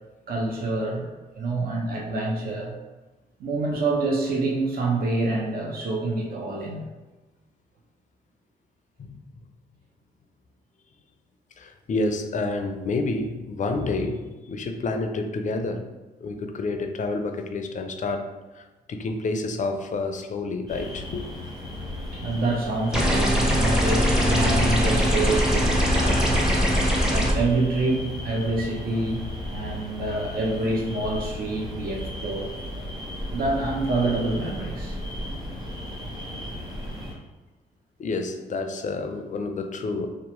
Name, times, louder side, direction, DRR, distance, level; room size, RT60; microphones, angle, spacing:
voice 1, 0.3-1.1 1.4-2.7 3.4-6.9 22.1-26.3 27.1-29.2 29.5-32.5 33.3-35.0, right 2 dB, 55° right, -1 dB, 0.6 m, -27 dB
voice 2, 11.6-15.8 16.2-18.3 18.5-21.2 24.1-24.2 35.4-35.6 38.0-40.1, left 3 dB, 45° left, 6 dB, 0.4 m, -29 dB
Gentle rich cricket and insects at night rural-Lebanon, 20.7-37.1, left 1 dB, 25° right, 1.2 m, -35 dB
sound 1, 22.9-27.3, equal, 5° right, 0.6 m, -21 dB
2.8 x 2.0 x 3.0 m, 1.1 s
supercardioid pair, 65°, 18 cm